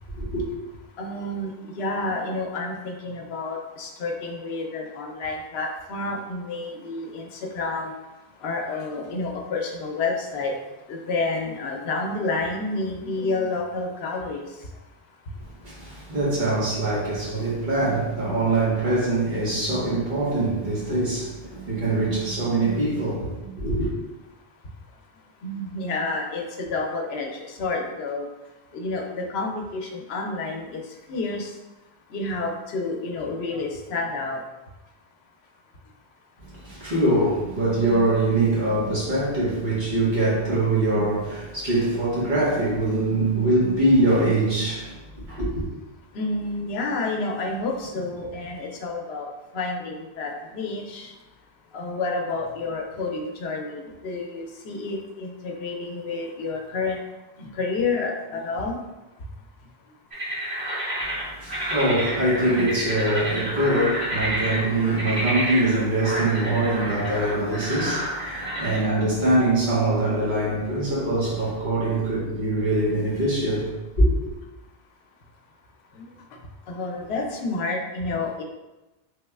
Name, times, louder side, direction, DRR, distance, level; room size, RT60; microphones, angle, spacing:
voice 1, 1.0-1.5 1.8-7.9 8.4-10.5 10.9-14.4 25.4-28.3 28.7-30.8 31.1-31.5 32.1-34.4 46.1-49.3 49.5-51.1 51.7-57.0 57.4-58.8 76.7-78.4, left 3 dB, 85° left, 2 dB, 0.8 m, -29 dB
voice 2, 15.6-23.9 36.4-45.6 61.0-61.1 61.3-73.7 74.0-74.3, right 2 dB, 50° right, -8 dB, 1.3 m, -23 dB
sound 1, 60.1-68.8, right 1 dB, 75° right, 2.0 m, -29 dB
3.5 x 3.0 x 2.3 m, 1.1 s
omnidirectional pair, 1.0 m